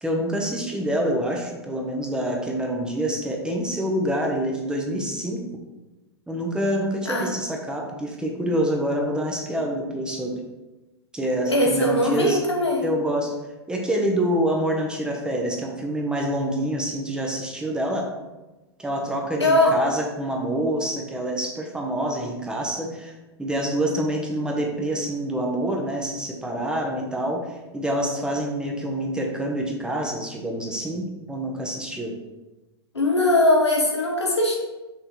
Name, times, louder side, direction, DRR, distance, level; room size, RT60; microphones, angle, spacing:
voice 1, 0.0-5.5 6.3-10.4 11.1-12.4 12.8-13.4 13.7-18.1 18.8-23.1 23.4-32.1, right 1 dB, 5° right, 0 dB, 0.9 m, -26 dB
voice 2, 11.5-12.9 19.4-19.8 32.9-34.6, left 1 dB, 85° left, -1 dB, 1.4 m, -20 dB
5.8 x 3.9 x 4.4 m, 1.1 s
figure-of-eight pair, 100°, 14 cm